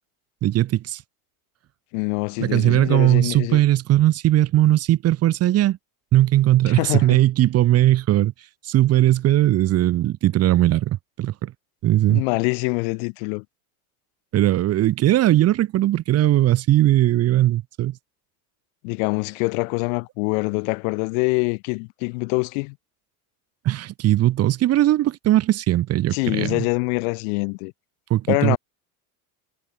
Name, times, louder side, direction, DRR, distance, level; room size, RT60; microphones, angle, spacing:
voice 1, 0.4-1.0 2.4-5.8 6.1-8.3 8.6-11.5 11.8-12.2 14.3-18.0 23.6-26.6 28.1-28.6, right 14 dB, 35° right, 0.8 m, -19 dB
voice 2, 1.9-3.6 6.7-7.2 12.1-13.4 18.8-22.8 26.1-27.7 28.3-28.6, left 37 dB, 80° left, 2.6 m, -24 dB
cardioid pair, 135°, 41 cm